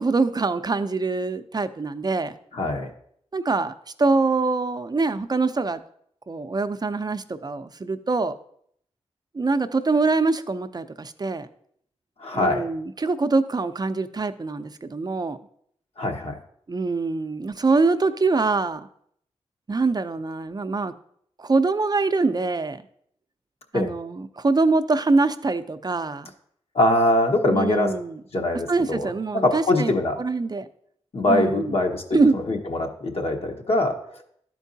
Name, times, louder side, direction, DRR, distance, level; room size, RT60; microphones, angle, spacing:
voice 1, 0.0-2.4 3.3-5.8 6.3-8.4 9.3-11.5 12.3-15.4 16.7-18.9 19.7-20.9 21.4-22.8 23.7-26.3 27.5-28.2 28.7-30.7 31.3-31.7 32.1-32.4, right 3 dB, 35° right, 11 dB, 0.5 m, -24 dB
voice 2, 2.5-2.9 12.2-12.7 16.0-16.4 23.7-23.9 26.7-27.9 28.3-30.2 31.1-34.2, left 2 dB, 60° left, 2 dB, 1.2 m, -23 dB
12.0 x 4.5 x 2.7 m, 0.67 s
cardioid pair, 45°, 12 cm